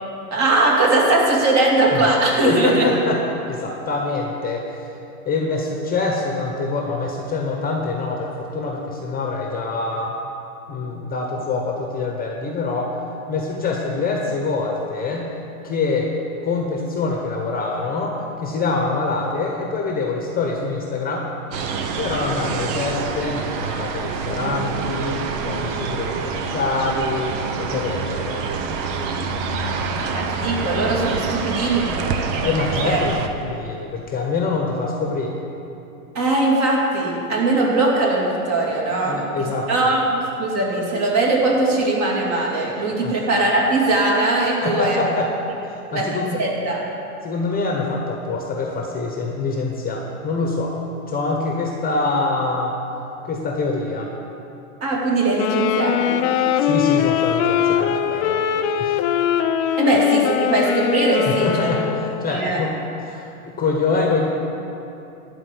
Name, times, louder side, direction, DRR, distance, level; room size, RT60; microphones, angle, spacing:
voice 1, 0.3-2.9 30.1-32.5 32.8-33.0 36.1-45.0 45.9-46.0 46.3-46.8 54.8-56.3 59.7-61.7 62.2-62.6, right 2 dB, 35° right, -2 dB, 2.5 m, -20 dB
voice 2, 2.4-4.9 5.3-10.2 10.7-12.9 13.3-15.3 15.6-16.1 16.4-21.3 22.0-28.5 32.4-33.2 33.4-35.3 39.0-40.0 43.0-43.1 44.6-45.3 45.6-46.4 47.2-50.8 51.1-52.8 53.2-54.1 56.6-59.0 61.3-62.7 63.0-64.3, left 3 dB, 20° left, 0 dB, 1.1 m, -25 dB
sound 1, 21.5-33.3, right 5 dB, 55° right, 1.0 m, -26 dB
sound 2, 55.3-62.4, left 10 dB, 50° left, 0.6 m, -21 dB
12.0 x 4.5 x 8.5 m, 2.8 s
hypercardioid pair, 115°, 45 cm